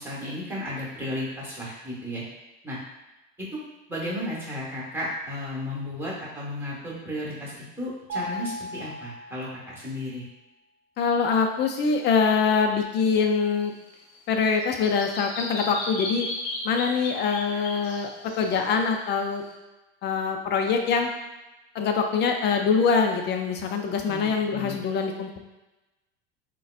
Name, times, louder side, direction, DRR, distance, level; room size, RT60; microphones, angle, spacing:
voice 1, 0.0-2.2 2.6-2.8 3.5-3.6 3.9-10.2 24.0-24.8, left 1 dB, 5° right, -6 dB, 1.3 m, -34 dB
Mallet percussion, 8.1-10.1, equal, 50° right, 0.7 m, -37 dB
voice 2, 11.0-13.7 14.3-16.3 16.6-18.1 18.4-19.4 20.0-21.1 21.7-25.4, left 5 dB, 35° left, 4 dB, 0.5 m, -24 dB
Bird vocalization bird call bird song, 13.6-19.5, left 2 dB, 70° left, 0.8 m, -36 dB
3.8 x 2.2 x 2.4 m, 1.0 s
supercardioid pair, 105°, 31 cm